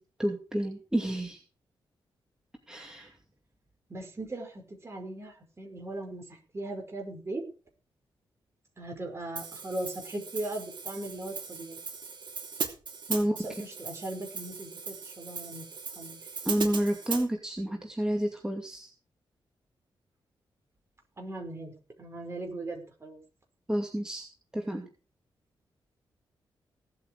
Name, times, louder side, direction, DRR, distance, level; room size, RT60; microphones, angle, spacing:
voice 1, 0.0-1.4 2.7-3.1 13.1-13.4 16.5-18.9 23.7-24.3 24.5-24.9, right 1 dB, 5° right, 2 dB, 2.4 m, -30 dB
voice 2, 3.9-7.4 8.8-11.8 13.3-15.7 16.0-16.2 21.2-23.2, right 2 dB, 30° right, 3 dB, 5.4 m, -39 dB
Hi-hat, 9.4-17.3, right 5 dB, 60° right, 2.7 m, -38 dB
17.5 x 8.4 x 4.9 m, 0.35 s
cardioid pair, 105°, 9 cm